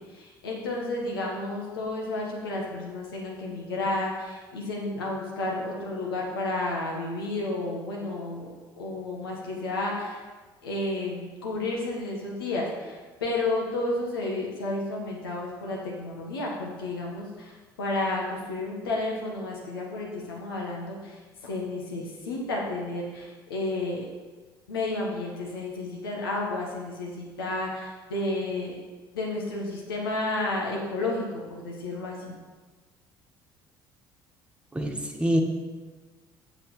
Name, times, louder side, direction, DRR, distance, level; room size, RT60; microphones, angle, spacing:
voice 1, 0.1-10.2 10.6-24.0 24.7-28.8 29.1-32.4, left 2 dB, 80° left, -2 dB, 1.7 m, -31 dB
voice 2, 34.7-35.4, equal, 10° right, 2 dB, 1.7 m, -25 dB
8.0 x 7.4 x 5.8 m, 1.4 s
figure-of-eight pair, 55°, 12 cm